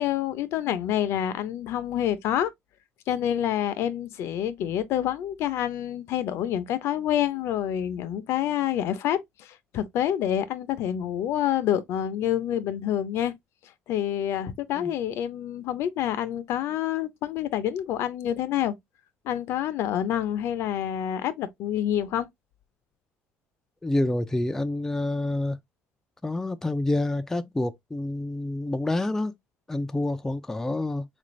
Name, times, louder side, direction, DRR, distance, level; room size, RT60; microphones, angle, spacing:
voice 1, 0.0-2.5 3.1-13.3 13.9-18.7 19.2-22.3, left 11 dB, 65° left, 0.5 m, -27 dB
voice 2, 23.8-25.6 26.2-29.3 29.7-31.0, left 2 dB, 10° left, 0.3 m, -28 dB
3.7 x 2.5 x 3.0 m
cardioid pair, 120°, 5 cm